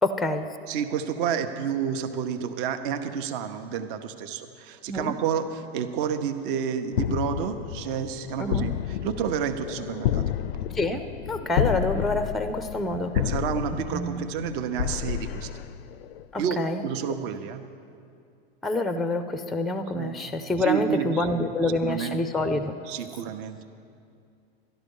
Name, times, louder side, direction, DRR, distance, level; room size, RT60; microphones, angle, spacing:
voice 1, 0.0-0.5 4.9-5.1 8.4-8.7 10.7-13.2 13.9-14.2 16.3-16.8 18.6-22.7, left 2 dB, ahead, 10 dB, 0.4 m, -27 dB
voice 2, 0.7-10.5 13.1-15.5 16.4-17.6 19.9-20.1 20.6-22.2 22.9-23.6, right 8 dB, 60° right, 8 dB, 0.8 m, -30 dB
sound 1, 6.9-16.2, left 11 dB, 75° left, 0.4 m, -30 dB
13.0 x 11.5 x 5.3 m, 2.4 s
hypercardioid pair, 115°, 30 cm